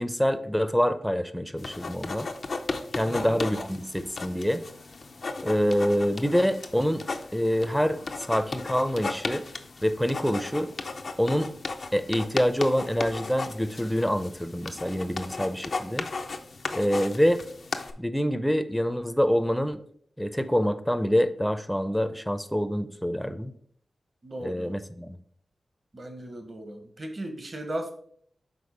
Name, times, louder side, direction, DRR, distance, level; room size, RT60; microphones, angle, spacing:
voice 1, 0.0-2.3 2.9-4.6 5.4-7.0 7.3-8.0 8.3-9.4 9.8-10.7 11.2-11.5 11.9-16.1 16.7-17.4 18.0-19.8 20.2-23.5 24.4-25.2, equal, 5° left, 11 dB, 0.6 m, -26 dB
sound 1, 1.6-17.9, left 3 dB, 65° left, 0.6 m, -36 dB
voice 2, 3.0-3.4 24.2-24.7 25.9-27.9, right 1 dB, 45° right, 6 dB, 1.1 m, -37 dB
5.3 x 3.8 x 5.0 m, 0.62 s
cardioid pair, 45°, 0 cm